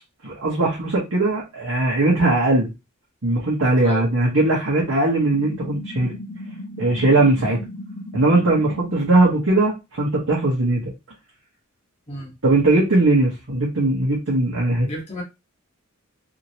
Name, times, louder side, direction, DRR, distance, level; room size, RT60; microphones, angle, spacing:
voice 1, 0.2-2.7 3.2-6.1 6.8-7.6 8.1-10.9 12.4-14.9, right 2 dB, 65° right, -4 dB, 1.0 m, -19 dB
sound 1, 5.3-9.2, left 1 dB, 65° left, 0.5 m, -36 dB
voice 2, 14.8-15.2, equal, 30° left, -2 dB, 1.1 m, -32 dB
3.0 x 2.8 x 2.7 m, 0.25 s
head